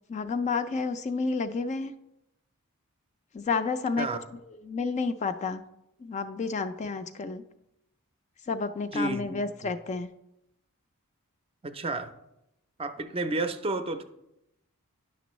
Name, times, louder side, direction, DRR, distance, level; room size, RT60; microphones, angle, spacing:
voice 1, 0.1-1.9 3.3-4.2 4.5-5.6 6.0-7.4 8.5-10.1, left 4 dB, 30° left, 9 dB, 0.3 m, -30 dB
voice 2, 8.9-9.7 11.6-12.1 12.8-14.0, right 2 dB, 25° right, 9 dB, 0.5 m, -31 dB
10.0 x 6.0 x 3.1 m, 0.85 s
head